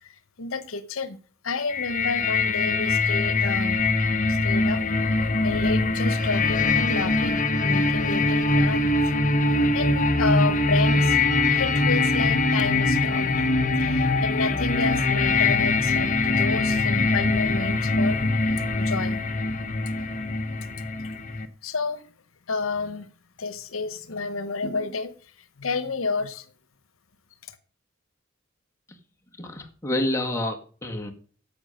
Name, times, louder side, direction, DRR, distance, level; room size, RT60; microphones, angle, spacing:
voice 1, 0.0-1.2 1.4-3.8 4.3-8.9 9.4-11.2 11.5-13.3 13.8-19.2 19.9-20.0 21.0-21.1 21.6-22.0 22.5-23.1 23.4-25.3 25.6-26.5, left 4 dB, 85° left, 14 dB, 1.0 m, -30 dB
sound 1, 1.7-21.5, left 2 dB, 40° left, 1.0 m, -23 dB
voice 2, 29.3-31.1, left 1 dB, 15° left, 2 dB, 1.8 m, -28 dB
10.5 x 7.4 x 6.4 m, 0.42 s
head